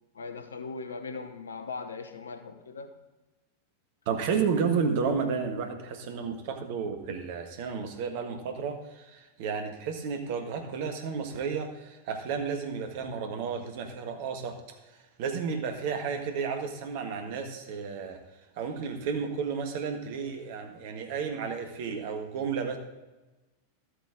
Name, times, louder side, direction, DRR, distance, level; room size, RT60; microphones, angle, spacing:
voice 1, 0.1-2.9, left 4 dB, 70° left, 8 dB, 1.0 m, -39 dB
voice 2, 4.0-14.6 15.2-18.2 18.6-22.8, right 6 dB, 50° right, 5 dB, 1.5 m, -32 dB
13.0 x 8.2 x 3.7 m, 1.1 s
figure-of-eight pair, 90°, 0 cm